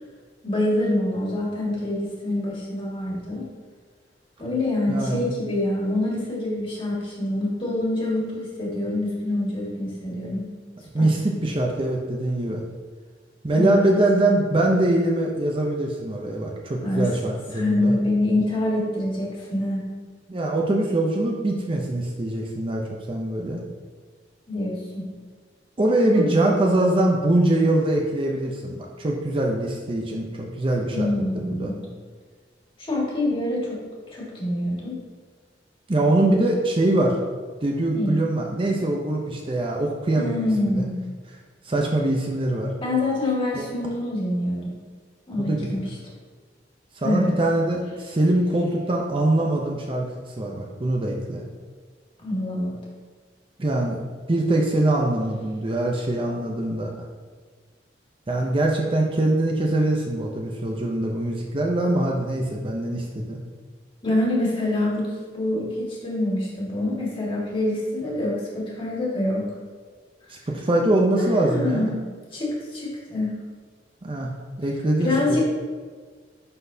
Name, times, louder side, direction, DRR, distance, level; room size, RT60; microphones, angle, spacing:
voice 1, 0.4-3.5 4.4-10.4 11.0-11.1 13.5-13.9 16.8-17.1 17.5-19.8 24.5-25.0 26.2-26.4 30.9-31.7 32.8-33.8 34.1-35.0 37.9-38.1 40.2-41.0 42.8-44.7 45.3-45.8 47.0-47.3 52.2-52.8 64.0-69.4 71.2-71.9 72.3-73.4 75.0-75.4, left 1 dB, 30° left, -5 dB, 1.8 m, -25 dB
voice 2, 4.9-5.3 10.9-12.6 13.4-17.9 20.3-22.8 23.1-23.6 25.8-31.1 31.3-31.7 35.9-37.2 37.6-40.8 41.6-42.7 43.5-43.6 45.4-45.8 47.0-50.1 50.4-51.4 53.6-54.0 54.3-56.9 58.3-63.4 70.3-71.9 74.0-74.3 74.6-75.1, right 1 dB, 30° right, 0 dB, 0.6 m, -23 dB
10.5 x 4.0 x 2.7 m, 1.5 s
head